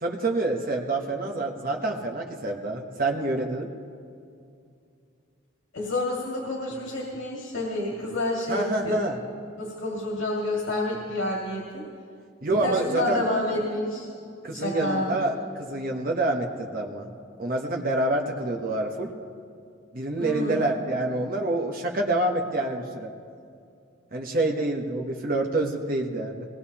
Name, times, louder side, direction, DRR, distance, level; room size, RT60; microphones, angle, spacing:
voice 1, 0.0-3.7 8.5-9.2 12.4-13.2 14.4-17.1 17.4-19.1 19.9-23.1 24.1-26.5, right 2 dB, 45° right, 1 dB, 1.0 m, -27 dB
voice 2, 5.7-9.0 9.6-11.8 12.5-14.1 14.5-15.2 20.2-20.7, left 1 dB, 80° left, -2 dB, 2.1 m, -29 dB
21.5 x 17.5 x 2.9 m, 2.4 s
head